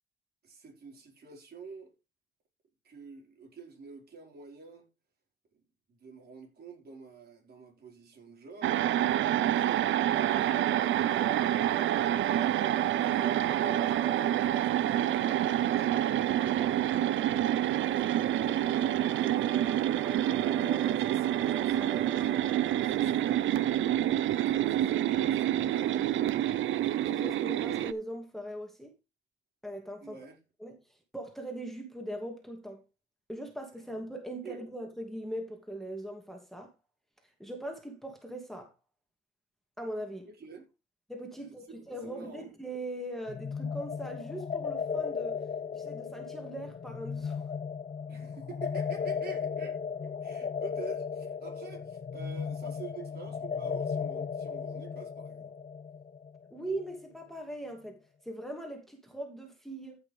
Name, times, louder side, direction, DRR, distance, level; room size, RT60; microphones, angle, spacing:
voice 1, 0.4-1.9 2.8-4.9 5.5-11.0 13.0-16.9 17.6-19.6 20.5-23.6 24.4-26.0 30.0-30.4 34.4-34.6 40.4-40.7 41.4-42.5 48.1-55.5, right 4 dB, 55° right, 5.1 m, -48 dB
sound 1, 8.6-27.9, right 12 dB, 75° right, 0.7 m, -27 dB
sound 2, 9.6-24.2, right 4 dB, 20° right, 4.9 m, -44 dB
voice 2, 26.8-28.9 29.6-30.2 30.6-30.8 31.1-32.8 33.3-36.7 37.4-38.7 39.8-40.3 41.1-45.4 45.7-47.4 56.5-58.0 58.2-60.0, right 1 dB, ahead, 2.6 m, -40 dB
sound 3, 43.3-56.9, left 6 dB, 35° left, 1.1 m, -36 dB
14.5 x 6.2 x 3.5 m
cardioid pair, 90°, 20 cm